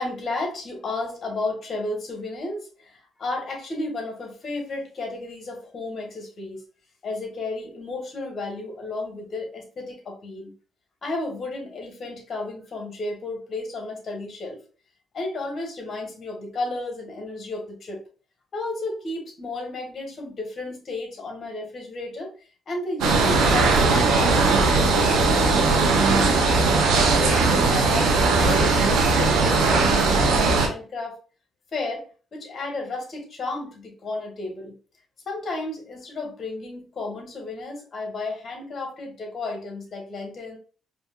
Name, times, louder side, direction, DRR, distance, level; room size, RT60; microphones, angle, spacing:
voice 1, 0.0-6.6 7.0-10.5 11.0-14.6 15.1-18.0 18.5-22.3 22.7-26.4 27.0-31.2 31.7-34.7 35.2-40.6, left 2 dB, 50° left, 2 dB, 1.5 m, -33 dB
sound 1, 23.0-30.7, right 3 dB, 90° right, 1.0 m, -19 dB
5.0 x 2.8 x 2.3 m, 0.37 s
cardioid pair, 90°, 0 cm